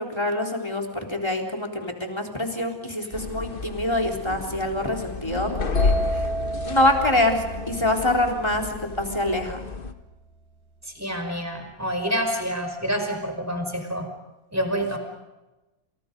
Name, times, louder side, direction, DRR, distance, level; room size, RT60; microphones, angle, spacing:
voice 1, 0.0-6.3 6.6-9.6, left 1 dB, 15° left, 2 dB, 3.7 m, -25 dB
sound 1, 3.1-9.9, left 3 dB, 30° left, 1.3 m, -34 dB
sound 2, 5.8-9.5, left 2 dB, 80° left, 7.5 m, -28 dB
voice 2, 10.9-14.1 14.5-15.0, equal, 10° right, 4 dB, 5.2 m, -27 dB
29.0 x 28.5 x 5.4 m, 1.1 s
omnidirectional pair, 2.1 m